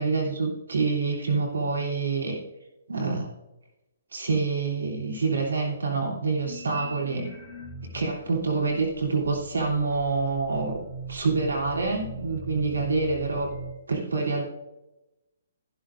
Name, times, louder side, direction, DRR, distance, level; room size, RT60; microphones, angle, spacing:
voice 1, 0.0-2.4 2.9-3.3 4.1-7.3 7.9-10.8 11.1-13.5 13.9-14.4, right 4 dB, 75° right, -2 dB, 3.2 m, -26 dB
sound 1, 6.4-8.1 8.8-13.7, right 2 dB, 5° right, 3.7 m, -40 dB
14.0 x 12.0 x 2.6 m, 0.96 s
figure-of-eight pair, 125°, 0 cm